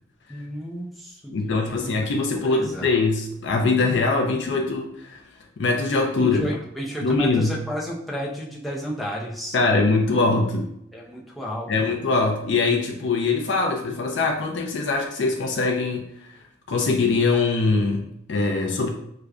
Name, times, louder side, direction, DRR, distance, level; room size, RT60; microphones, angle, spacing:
voice 1, 0.3-1.9 2.4-2.9 6.3-9.6 10.9-11.9, equal, ahead, -5 dB, 0.5 m, -32 dB
voice 2, 1.3-5.2 5.6-6.5 7.0-7.6 9.5-10.7 11.7-16.3 16.7-18.9, left 3 dB, 75° left, 2 dB, 0.4 m, -22 dB
4.7 x 2.2 x 2.3 m, 0.75 s
head